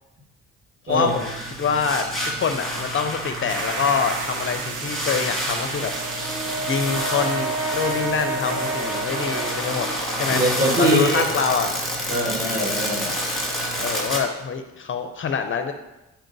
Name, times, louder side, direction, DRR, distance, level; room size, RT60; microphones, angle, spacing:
voice 1, 0.9-1.3 1.6-5.9 6.6-9.9 10.1-10.4 10.8-11.7 13.8-15.7, left 6 dB, 45° left, 7 dB, 0.5 m, -25 dB
sound 1, 0.9-14.2, equal, ahead, 2.0 m, -29 dB
sound 2, 3.5-11.7, right 7 dB, 80° right, 0.6 m, -37 dB
Brass instrument, 5.8-10.2, right 3 dB, 50° right, 1.7 m, -30 dB
voice 2, 10.3-11.3 12.1-13.1, right 1 dB, 30° right, -2 dB, 1.8 m, -22 dB
10.5 x 4.4 x 2.6 m, 0.99 s
cardioid pair, 90°, 30 cm